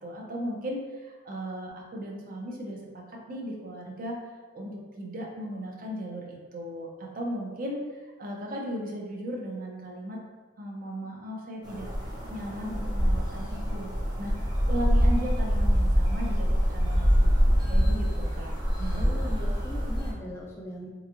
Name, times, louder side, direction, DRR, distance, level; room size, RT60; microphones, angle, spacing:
voice 1, 0.0-4.2 4.5-10.2 10.6-13.9 14.2-14.3 14.7-17.3 17.7-18.5 18.8-19.3, equal, 45° right, -1 dB, 0.6 m, -36 dB
sound 1, 11.6-20.1, equal, 20° right, 0.9 m, -25 dB
voice 2, 19.0-20.9, left 1 dB, 15° left, -3 dB, 0.4 m, -39 dB
3.4 x 3.1 x 2.5 m, 1.3 s
head